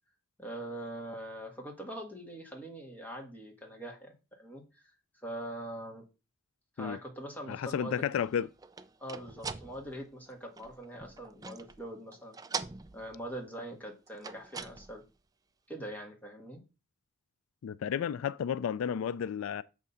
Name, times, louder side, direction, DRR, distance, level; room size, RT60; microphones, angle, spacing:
voice 1, 0.4-4.9 5.2-6.1 6.8-7.9 9.0-12.4 12.9-15.0 15.7-16.6, right 1 dB, 10° left, 1.9 m, -43 dB
voice 2, 7.5-8.5 17.6-19.6, left 8 dB, 90° left, 0.3 m, -32 dB
sound 1, 8.1-11.8 12.1-13.4 14.1-15.1, right 5 dB, 20° right, 0.3 m, -43 dB
7.7 x 3.6 x 5.6 m
head